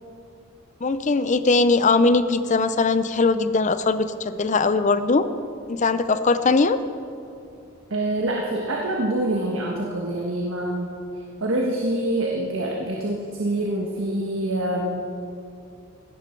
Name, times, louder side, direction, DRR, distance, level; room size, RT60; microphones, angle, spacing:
voice 1, 0.8-5.3 5.7-6.8, left 3 dB, 35° left, 12 dB, 0.5 m, -20 dB
voice 2, 7.9-10.9 11.4-15.0, right 1 dB, 65° right, -1 dB, 1.5 m, -25 dB
16.5 x 13.0 x 4.6 m, 2.5 s
head